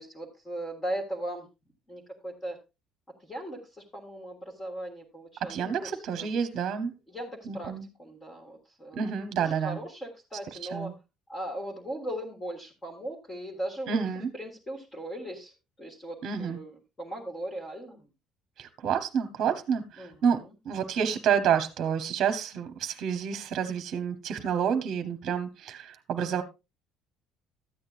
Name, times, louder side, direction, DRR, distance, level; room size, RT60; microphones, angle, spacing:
voice 1, 0.0-1.5 1.9-2.6 3.2-6.4 7.1-7.7 8.0-9.0 9.4-10.9 11.3-14.0 14.3-15.5 15.8-18.0 20.0-20.1 26.3-26.4, right 1 dB, 15° left, -3 dB, 1.8 m, -38 dB
voice 2, 5.4-6.9 7.5-7.9 8.9-9.8 10.5-10.9 13.9-14.3 16.2-16.6 18.6-26.4, right 7 dB, 45° right, 8 dB, 1.0 m, -29 dB
13.5 x 8.7 x 2.5 m, 0.25 s
cardioid pair, 145°, 0 cm